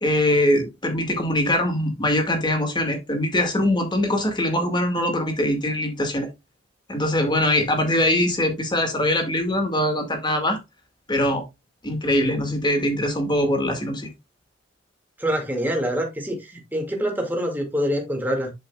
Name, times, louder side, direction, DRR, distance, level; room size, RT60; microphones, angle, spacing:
voice 1, 0.0-6.3 6.9-10.6 11.1-11.4 11.8-14.1, left 1 dB, 25° left, 2.1 m, -22 dB
voice 2, 15.2-18.5, equal, 10° right, 2.2 m, -25 dB
11.5 x 5.2 x 2.4 m
head